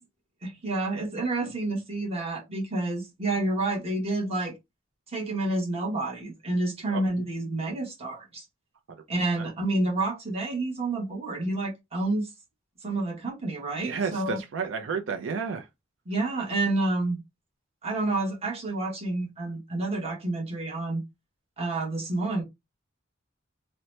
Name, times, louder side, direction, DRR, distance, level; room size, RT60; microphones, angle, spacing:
voice 1, 0.4-4.6 5.1-8.4 9.1-12.3 12.8-14.4 16.1-17.2 17.8-21.0 21.6-22.4, right 2 dB, 30° right, 1.0 m, -29 dB
voice 2, 13.8-15.7, right 5 dB, 75° right, 0.4 m, -31 dB
2.8 x 2.1 x 3.0 m
head